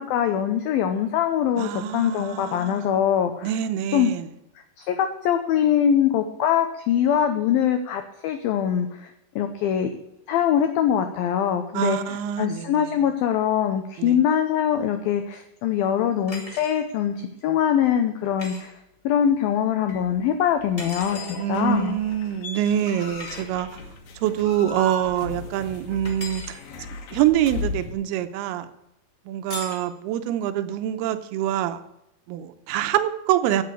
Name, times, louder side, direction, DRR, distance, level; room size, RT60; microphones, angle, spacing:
voice 1, 0.0-3.5 3.9-4.1 4.8-9.9 10.3-17.1 17.4-18.8 19.0-22.0, left 9 dB, 85° left, 7 dB, 2.1 m, -23 dB
voice 2, 1.6-3.0 3.4-4.3 11.7-12.9 14.0-14.2 21.4-23.7 24.2-26.6 27.1-28.7 29.3-31.8 32.3-33.6, right 11 dB, 80° right, 10 dB, 2.3 m, -25 dB
sound 1, 16.3-16.8 18.4-18.6 20.8-21.4 23.2-23.4 26.0-26.6 29.5-29.9, left 2 dB, 15° left, 1.3 m, -37 dB
sound 2, 19.9-27.9, left 3 dB, 60° left, 2.8 m, -37 dB
8.7 x 8.2 x 8.3 m, 0.86 s
omnidirectional pair, 5.2 m